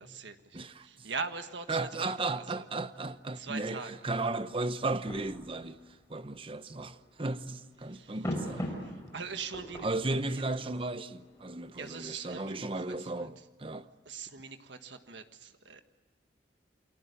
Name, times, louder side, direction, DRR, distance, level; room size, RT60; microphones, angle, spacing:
voice 1, 0.0-2.6 3.4-3.9 7.8-8.2 8.7-9.9 10.3-10.5 11.7-13.3 14.0-15.8, right 5 dB, 85° right, 1.5 m, -42 dB
voice 2, 0.5-1.1 1.7-5.8 6.1-8.7 9.8-13.9, right 2 dB, 30° right, 0.8 m, -35 dB
sound 1, 2.8-13.0, equal, 15° left, 5.7 m, -43 dB
29.0 x 23.0 x 8.3 m
head